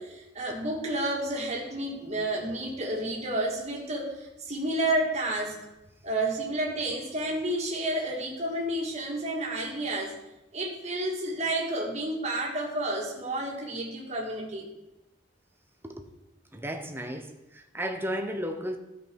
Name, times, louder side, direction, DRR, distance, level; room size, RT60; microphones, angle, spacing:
voice 1, 0.0-5.6 6.0-10.2 10.5-14.7, right 1 dB, 40° right, 2.0 m, -30 dB
voice 2, 16.5-18.8, equal, 10° right, 0.8 m, -34 dB
13.5 x 5.2 x 4.6 m
head